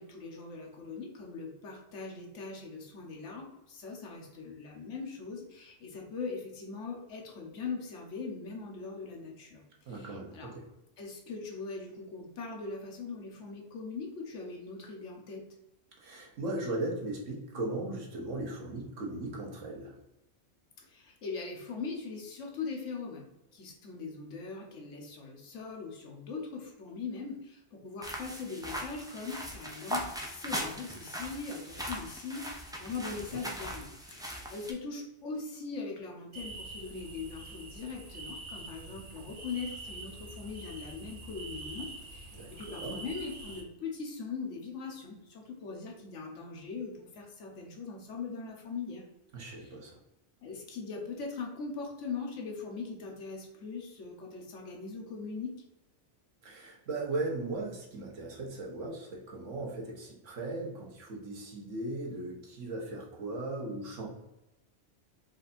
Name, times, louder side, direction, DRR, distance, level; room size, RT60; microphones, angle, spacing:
voice 1, 0.0-10.5 11.0-15.4 20.8-23.2 23.5-49.0 49.6-49.7 50.4-55.6, left 4 dB, 80° left, 0 dB, 1.3 m, -41 dB
voice 2, 9.8-10.7 16.0-20.0 33.0-33.2 42.3-43.0 49.3-50.0 56.4-64.1, right 2 dB, 85° right, -1 dB, 1.4 m, -38 dB
sound 1, 28.0-34.7, equal, 5° right, 0.5 m, -39 dB
sound 2, 36.3-43.6, right 2 dB, 50° right, 0.9 m, -45 dB
4.8 x 2.6 x 4.2 m, 0.92 s
omnidirectional pair, 1.2 m